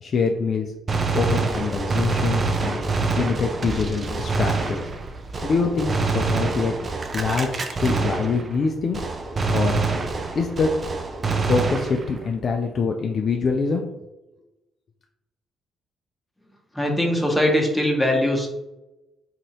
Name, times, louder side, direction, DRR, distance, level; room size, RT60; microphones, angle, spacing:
voice 1, 0.0-0.7 1.1-2.8 3.2-4.8 5.4-9.1 9.5-9.8 10.3-10.7 11.5-13.8, left 4 dB, 50° left, 2 dB, 0.3 m, -24 dB
Gunshot gunfire, 0.9-8.7 8.9-12.3, right 3 dB, 35° right, 0.4 m, -26 dB
voice 2, 16.7-18.5, left 1 dB, 5° left, 0 dB, 0.9 m, -21 dB
2.8 x 2.5 x 2.9 m, 0.96 s
figure-of-eight pair, 45°, 0 cm